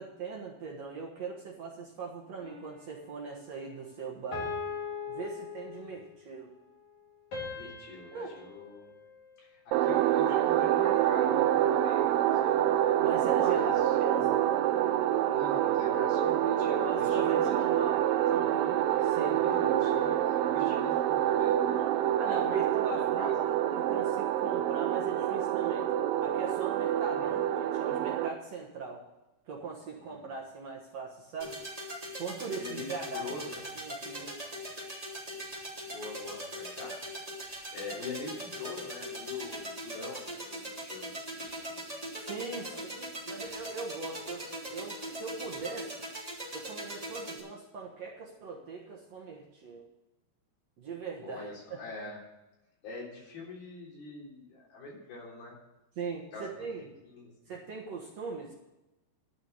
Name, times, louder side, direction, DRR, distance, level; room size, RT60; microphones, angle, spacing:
voice 1, 0.0-4.6 5.1-6.5 8.1-8.3 13.0-14.4 16.8-18.0 18.3-19.4 22.2-25.9 26.2-29.0 29.5-31.5 32.2-34.3 42.2-46.0 46.5-49.8 50.8-51.5 56.0-56.9 57.5-58.5, right 4 dB, 55° right, -2 dB, 2.1 m, -40 dB
sound 1, 2.4-3.1 4.3-6.1 7.3-9.7, left 5 dB, 50° left, 5.1 m, -41 dB
voice 2, 7.6-8.9 9.4-12.7 13.3-14.0 15.3-17.6 19.4-23.3 27.1-27.4 30.0-30.3 32.6-33.7 35.9-37.0 37.7-41.9 42.7-42.8 51.2-52.2 52.8-55.6 56.3-56.7 57.0-57.3, left 3 dB, 75° left, -3 dB, 5.5 m, -43 dB
sound 2, 9.7-28.3, right 11 dB, 75° right, 2.3 m, -27 dB
sound 3, 31.4-47.4, equal, 10° right, 2.8 m, -41 dB
12.0 x 6.1 x 8.0 m, 0.99 s
omnidirectional pair, 4.4 m